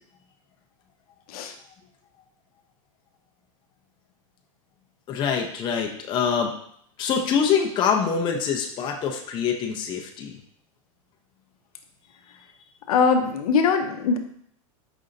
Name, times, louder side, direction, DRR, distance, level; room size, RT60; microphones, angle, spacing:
voice 1, 5.1-6.5 7.0-10.3, left 7 dB, 25° left, 2 dB, 0.5 m, -25 dB
voice 2, 12.9-14.2, left 5 dB, 90° left, 6 dB, 0.6 m, -21 dB
5.0 x 2.7 x 2.5 m, 0.66 s
supercardioid pair, 140°, 18 cm